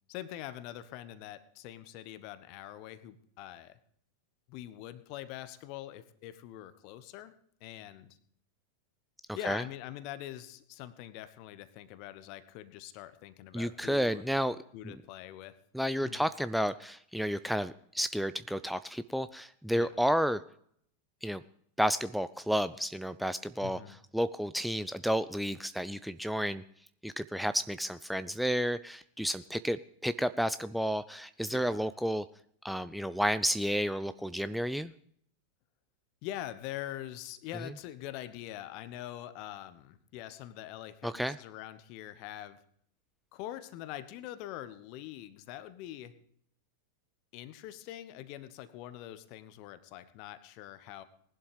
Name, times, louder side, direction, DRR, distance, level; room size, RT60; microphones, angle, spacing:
voice 1, 0.1-3.8 4.5-7.3 7.6-8.2 9.3-14.2 14.7-15.6 16.0-16.2 19.7-20.0 23.6-24.0 31.5-31.9 36.2-42.6 43.3-46.2 47.3-51.0, left 13 dB, 45° left, 14 dB, 1.0 m, -44 dB
voice 2, 13.5-14.6 14.8-14.9 15.7-20.4 21.2-21.4 21.8-23.8 24.1-26.6 27.0-29.8 30.0-32.2 32.6-34.9 41.0-41.4, equal, ahead, 14 dB, 0.4 m, -31 dB
20.0 x 11.5 x 3.4 m, 0.66 s
figure-of-eight pair, 90°, 0 cm